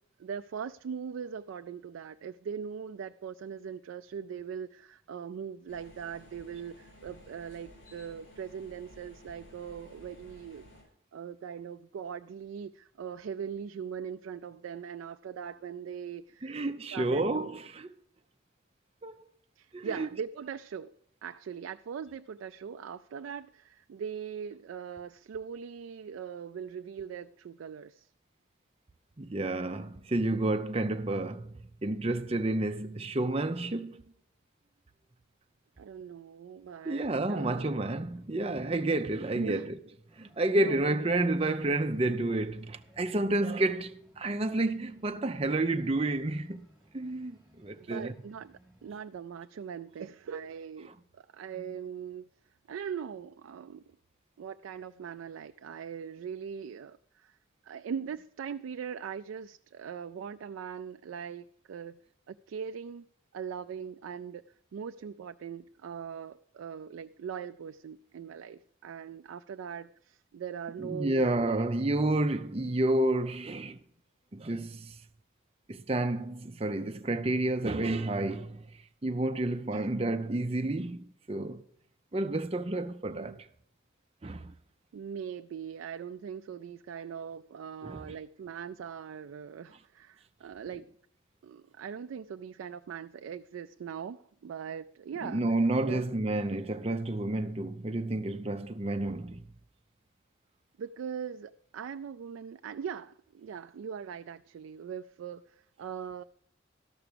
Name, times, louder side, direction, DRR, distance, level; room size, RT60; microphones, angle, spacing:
voice 1, 0.2-10.7 11.1-16.6 16.9-17.6 19.6-20.9 21.2-28.1 35.8-37.7 39.3-39.7 40.5-41.1 47.8-52.3 52.7-54.0 54.4-57.4 57.6-62.0 62.3-63.1 63.3-71.7 79.7-79.9 83.1-83.4 84.9-90.9 91.4-95.4 95.8-96.0 100.8-106.2, right 7 dB, 80° right, 0.3 m, -41 dB
sound 1, 5.7-10.8, equal, 85° left, 5.2 m, -55 dB
voice 2, 16.4-17.9 19.0-19.2 19.7-20.1 29.2-34.0 36.8-39.8 40.2-46.6 46.9-48.2 70.8-73.8 74.3-75.0 75.7-81.6 82.1-83.5 84.2-84.5 87.8-88.1 95.2-99.4, right 2 dB, 30° right, 0.6 m, -30 dB
sound 2, 40.1-48.9, right 1 dB, 5° left, 4.3 m, -62 dB
13.0 x 5.9 x 6.8 m
head